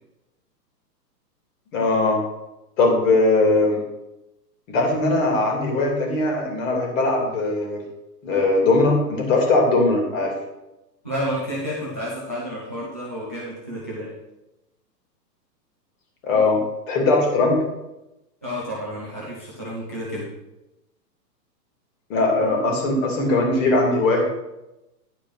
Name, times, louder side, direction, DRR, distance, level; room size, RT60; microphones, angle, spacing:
voice 1, 1.7-2.2 2.8-3.8 4.7-7.8 8.2-10.3 16.2-16.6 16.9-17.6 22.1-24.2, left 2 dB, 50° left, 1 dB, 3.0 m, -20 dB
voice 2, 11.0-14.1 18.4-20.3, equal, 10° right, -7 dB, 0.3 m, -30 dB
10.5 x 4.9 x 5.7 m, 0.95 s
hypercardioid pair, 140°, 50 cm